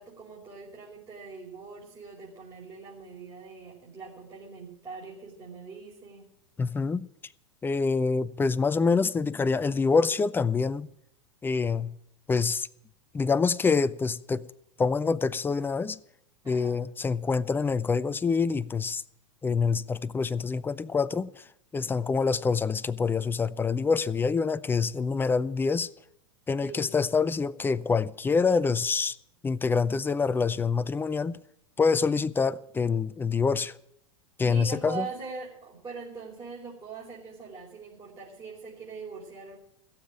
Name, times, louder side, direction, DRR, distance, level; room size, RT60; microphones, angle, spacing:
voice 1, 0.0-6.3 16.4-16.8 26.6-27.0 34.5-39.6, right 4 dB, 25° right, 4.6 m, -42 dB
voice 2, 6.6-7.1 7.6-10.9 11.4-11.9 12.3-12.7 13.1-14.4 14.8-16.0 16.5-19.0 19.4-21.3 21.7-25.9 26.5-29.2 29.4-31.4 31.8-33.8 34.4-35.1, left 5 dB, 15° left, 0.6 m, -26 dB
16.0 x 7.4 x 9.0 m
hypercardioid pair, 95°, 16 cm